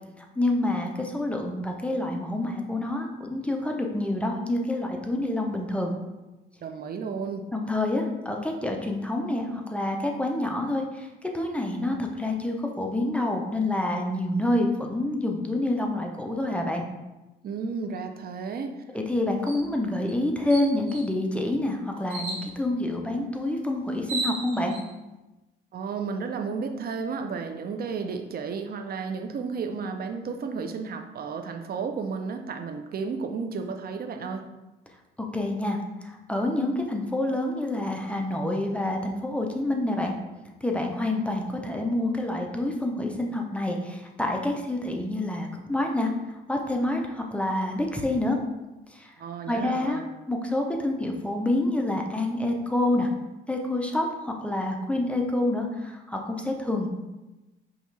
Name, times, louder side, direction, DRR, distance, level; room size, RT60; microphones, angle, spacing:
voice 1, 0.2-5.9 7.5-16.9 18.9-24.8 35.2-40.1 40.6-46.1 46.5-48.4 48.9-49.1 49.5-50.0 50.3-53.1 53.5-56.9, left 1 dB, 5° left, 1 dB, 0.5 m, -27 dB
voice 2, 6.6-7.4 17.4-18.7 25.7-34.4 49.2-50.0, right 5 dB, 50° right, 6 dB, 0.5 m, -33 dB
sound 1, 19.5-19.6 20.1-20.2 20.5-21.1 22.1-22.5 23.6-23.7 23.9-24.8, right 2 dB, 85° right, 1.1 m, -33 dB
5.3 x 2.4 x 3.2 m, 1.1 s
cardioid pair, 90°, 20 cm